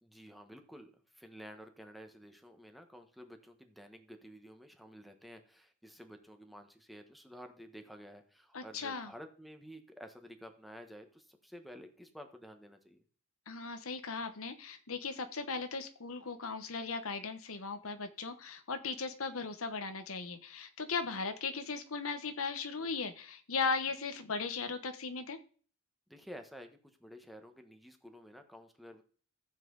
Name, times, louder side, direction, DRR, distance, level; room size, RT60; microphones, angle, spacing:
voice 1, 0.0-13.0 26.1-29.0, equal, ahead, 5 dB, 1.2 m, -52 dB
voice 2, 8.5-9.1 13.5-25.4, left 4 dB, 70° left, 8 dB, 1.1 m, -37 dB
14.0 x 7.5 x 3.9 m, 0.43 s
head